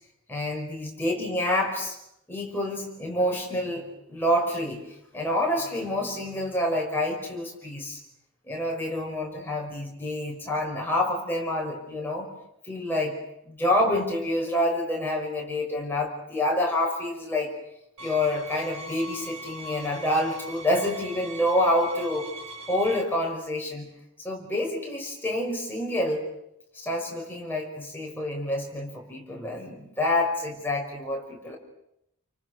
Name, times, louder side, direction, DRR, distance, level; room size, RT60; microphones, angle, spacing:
voice 1, 0.3-2.0 2.3-4.8 5.1-8.0 8.5-12.3 12.6-13.2 13.5-17.5 18.0-22.3 22.7-23.9 24.2-26.2 26.7-31.6, left 1 dB, 10° left, -1 dB, 5.6 m, -27 dB
sound 1, 18.0-23.0, right 2 dB, 80° right, 5.7 m, -41 dB
29.0 x 25.0 x 6.5 m, 0.79 s
head